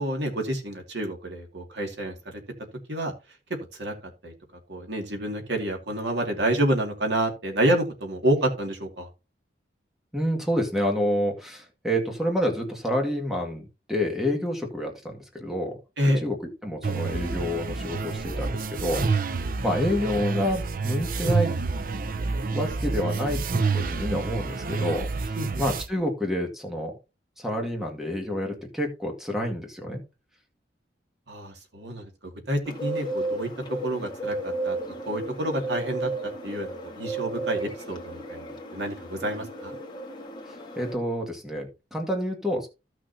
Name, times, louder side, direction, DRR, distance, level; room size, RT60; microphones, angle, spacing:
voice 1, 0.0-2.4 2.9-3.1 3.5-3.9 4.2-4.3 4.7-9.1 16.0-16.2 25.4-25.6 31.3-32.1 32.5-33.5 33.8-34.8 35.1-39.8, right 1 dB, 70° right, 3 dB, 2.3 m, -28 dB
voice 2, 10.1-15.8 16.2-16.4 16.6-19.0 19.6-21.5 22.5-23.4 23.7-27.0 27.4-30.0 40.8-42.7, equal, ahead, 1 dB, 1.9 m, -28 dB
sound 1, 16.8-25.9, right 4 dB, 50° right, 0.5 m, -28 dB
Bird, 32.7-40.9, right 2 dB, 25° left, 1.7 m, -34 dB
15.0 x 6.2 x 2.8 m, 0.28 s
head